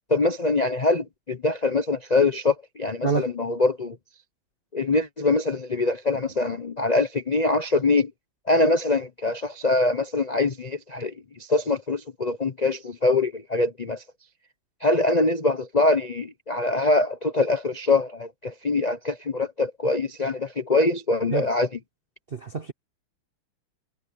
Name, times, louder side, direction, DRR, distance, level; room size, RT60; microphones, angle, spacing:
voice 1, 0.1-4.0 4.7-8.1 8.5-14.0 14.8-21.7, left 2 dB, 80° left, 0.3 m, -23 dB
voice 2, 3.0-3.3 21.3-21.5 22.3-22.7, right 5 dB, 55° right, 0.6 m, -27 dB
omnidirectional pair, 2.4 m